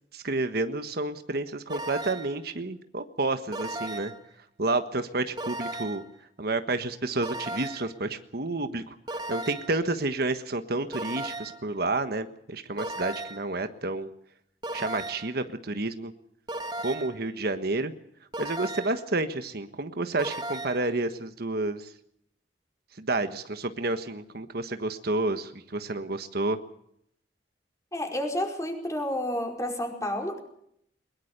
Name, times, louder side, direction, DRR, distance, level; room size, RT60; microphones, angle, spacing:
voice 1, 0.1-4.1 4.6-6.0 6.4-8.9 9.3-14.1 14.7-16.1 16.8-17.9 18.4-21.9 23.0-26.6, right 2 dB, 60° right, 9 dB, 1.4 m, -30 dB
sound 1, 1.7-2.4 3.5-4.3 5.4-6.1 7.2-8.0 9.1-9.8 10.9-11.7 12.8-13.5 14.6-15.4 16.5-17.2 18.3-19.1 20.2-20.9, right 1 dB, 25° right, 1.7 m, -36 dB
voice 2, 27.9-30.4, left 1 dB, 20° left, 2 dB, 4.8 m, -30 dB
22.5 x 21.5 x 6.7 m, 0.72 s
head